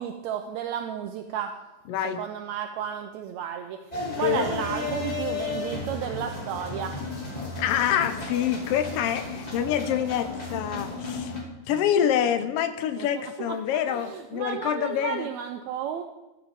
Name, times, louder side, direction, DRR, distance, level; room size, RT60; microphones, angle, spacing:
voice 1, 0.0-1.6 2.0-3.8 4.2-7.0 11.7-11.8 13.0-16.0, right 9 dB, 75° right, 6 dB, 1.8 m, -33 dB
voice 2, 1.9-2.2 4.2-4.5 7.6-11.3 11.7-15.3, left 9 dB, 80° left, 9 dB, 1.3 m, -26 dB
sound 1, 3.9-11.4, left 3 dB, 15° left, 2.1 m, -34 dB
13.0 x 12.0 x 3.6 m, 1.0 s
omnidirectional pair, 3.5 m